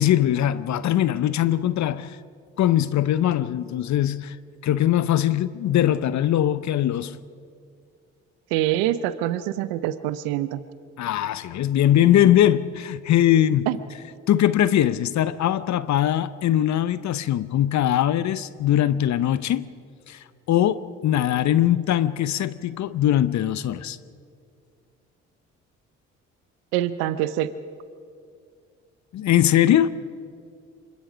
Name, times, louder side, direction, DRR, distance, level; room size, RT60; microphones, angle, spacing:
voice 1, 0.0-2.2 2.6-4.4 4.6-7.2 11.0-13.7 14.3-19.7 20.1-20.2 20.5-24.0 29.1-29.9, left 11 dB, 60° left, 0.8 m, -21 dB
voice 2, 8.5-10.6 13.7-13.8 26.7-27.5, right 13 dB, 85° right, 0.7 m, -25 dB
25.5 x 21.5 x 5.1 m
hypercardioid pair, 55°, 32 cm